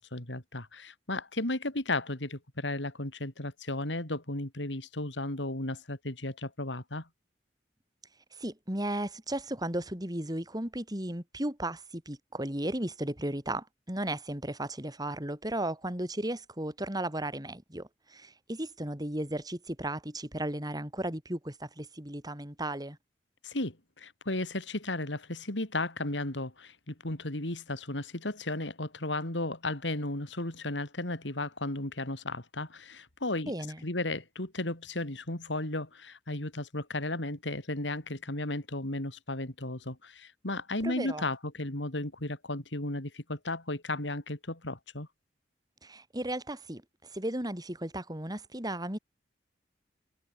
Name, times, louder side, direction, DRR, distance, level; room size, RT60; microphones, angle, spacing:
voice 1, 0.0-7.1 23.4-33.5 33.8-45.1, left 2 dB, 85° left, 4.1 m, -34 dB
voice 2, 8.4-23.0 33.5-33.8 40.8-41.2 45.8-46.8 47.1-49.0, right 1 dB, 20° right, 4.1 m, -35 dB
head